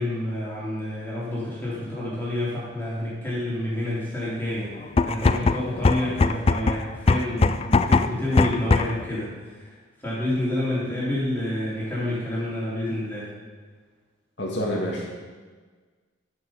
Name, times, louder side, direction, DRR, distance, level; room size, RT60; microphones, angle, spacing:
voice 1, 0.0-4.8 5.0-9.7 10.0-13.3, left 1 dB, 10° left, -8 dB, 3.3 m, -28 dB
sound 1, 4.8-9.1, left 3 dB, 30° left, 0.3 m, -21 dB
voice 2, 14.4-15.1, equal, 60° left, -2 dB, 2.3 m, -27 dB
14.5 x 6.1 x 5.8 m, 1.5 s
head